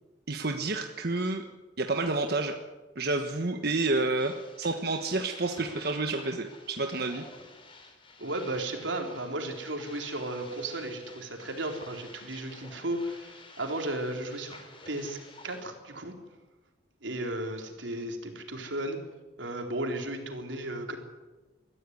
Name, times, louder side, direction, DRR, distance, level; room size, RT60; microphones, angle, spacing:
voice 1, 0.3-1.4 1.8-2.6 2.9-7.2, right 3 dB, 55° right, 5 dB, 1.3 m, -29 dB
sound 1, 4.2-15.6, left 3 dB, 30° left, 3.9 m, -51 dB
voice 2, 8.2-14.6 14.9-15.2 15.4-16.2 17.0-19.0 19.4-21.0, right 1 dB, 85° right, 3 dB, 3.9 m, -34 dB
23.0 x 15.0 x 9.6 m, 1.2 s
head